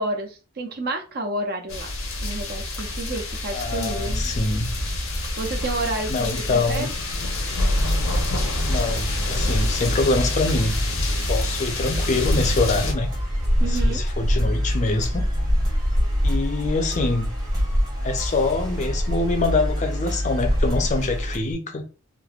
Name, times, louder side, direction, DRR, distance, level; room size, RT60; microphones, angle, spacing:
voice 1, 0.0-1.9 2.2-4.3 5.4-6.9 13.6-14.0, right 2 dB, 50° right, 0.5 m, -30 dB
sound 1, 1.7-12.9, left 1 dB, 80° left, 0.8 m, -26 dB
voice 2, 3.5-4.7 6.1-6.9 8.7-10.8 11.3-13.1 13.7-15.2 16.2-17.3 18.0-21.9, left 3 dB, 35° left, 0.4 m, -25 dB
sound 2, 5.9-21.4, equal, 20° right, 0.8 m, -29 dB
sound 3, 12.2-21.5, equal, 75° right, 1.3 m, -26 dB
3.1 x 2.0 x 2.3 m
head